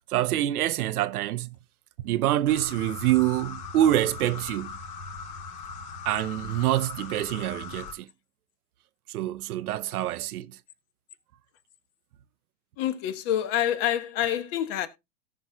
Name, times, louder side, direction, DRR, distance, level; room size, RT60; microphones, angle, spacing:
voice 1, 0.1-1.6 2.0-4.8 6.0-8.1 9.1-10.5, right 13 dB, 60° right, 0.7 m, -26 dB
sound 1, 2.5-7.9, left 5 dB, 55° left, 3.5 m, -40 dB
voice 2, 12.8-14.9, left 11 dB, 35° left, 1.2 m, -27 dB
17.5 x 6.2 x 2.2 m
hypercardioid pair, 140°, 49 cm